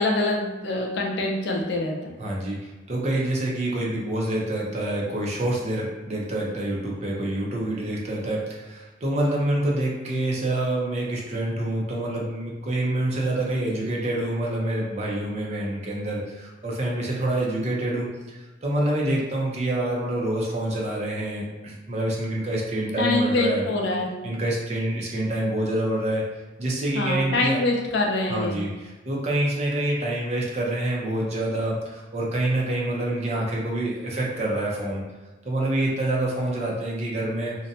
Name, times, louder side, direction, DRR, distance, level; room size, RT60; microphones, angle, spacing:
voice 1, 0.0-2.1 23.0-24.1 26.9-28.6, left 2 dB, 65° left, 0 dB, 0.4 m, -25 dB
voice 2, 2.2-2.6 2.9-23.6 24.2-26.3 26.6-27.6 28.3-35.0 35.4-37.6, right 1 dB, 35° right, -3 dB, 0.5 m, -26 dB
2.6 x 2.1 x 2.5 m, 1.2 s
head